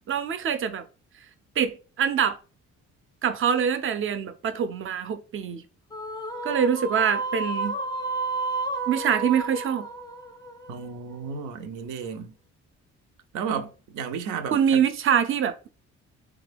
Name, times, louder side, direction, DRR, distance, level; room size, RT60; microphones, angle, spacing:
voice 1, 0.1-0.8 1.6-2.4 3.2-5.6 6.4-7.8 8.9-9.9 14.5-15.7, right 8 dB, 45° right, 0.5 m, -24 dB
sound 1, 5.9-11.3, right 3 dB, 15° left, 0.5 m, -31 dB
voice 2, 10.7-12.3 13.3-14.8, right 6 dB, 90° right, 0.6 m, -33 dB
3.2 x 2.3 x 3.3 m
cardioid pair, 90°, 30 cm